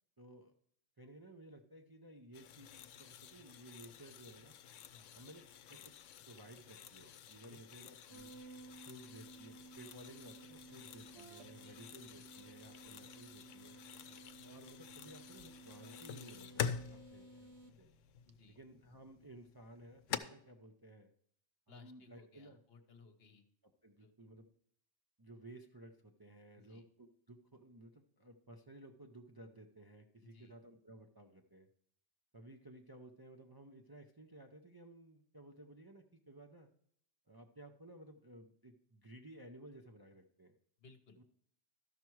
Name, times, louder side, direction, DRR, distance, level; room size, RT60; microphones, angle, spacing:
voice 1, 0.2-0.5 1.0-4.5 5.2-8.3 8.8-13.8 14.4-17.5 17.8-17.9 18.5-21.1 21.7-22.6 23.8-24.5 25.2-31.7 32.3-36.7 37.3-40.5 41.2-41.3, right 1 dB, 25° right, 3 dB, 0.5 m, -56 dB
sound 1, 2.3-20.2, left 8 dB, 85° left, 1.0 m, -48 dB
voice 2, 4.9-5.3 7.4-7.6 11.6-11.9 13.9-14.2 18.2-18.6 21.7-23.4 24.0-24.1 26.5-26.8 30.2-30.6 40.8-41.2, left 4 dB, 55° left, 7 dB, 1.1 m, -62 dB
sound 2, 8.1-18.5, right 3 dB, 65° right, 0.9 m, -57 dB
13.0 x 5.9 x 4.6 m, 0.66 s
omnidirectional pair, 1.3 m